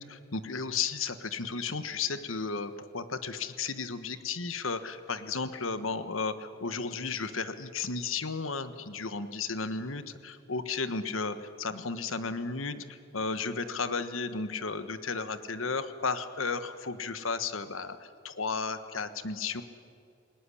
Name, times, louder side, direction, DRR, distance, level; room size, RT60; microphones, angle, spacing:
voice 1, 0.0-19.6, left 4 dB, 85° left, 11 dB, 1.4 m, -34 dB
28.0 x 19.0 x 10.0 m, 2.4 s
head